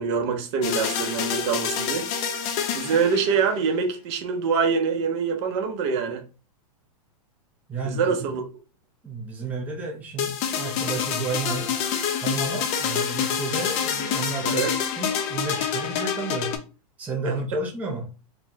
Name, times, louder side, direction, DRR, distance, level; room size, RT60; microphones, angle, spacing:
voice 1, 0.0-2.1 2.7-6.2 7.8-8.4 14.4-14.7, right 6 dB, 45° right, 0.8 m, -25 dB
sound 1, 0.6-3.6 10.2-16.6, left 8 dB, 35° left, 0.6 m, -27 dB
voice 2, 7.7-8.3 9.0-11.7 12.2-14.7 15.0-16.5 17.0-18.1, right 3 dB, 10° right, 0.6 m, -31 dB
4.1 x 2.2 x 2.7 m
hypercardioid pair, 135°, 19 cm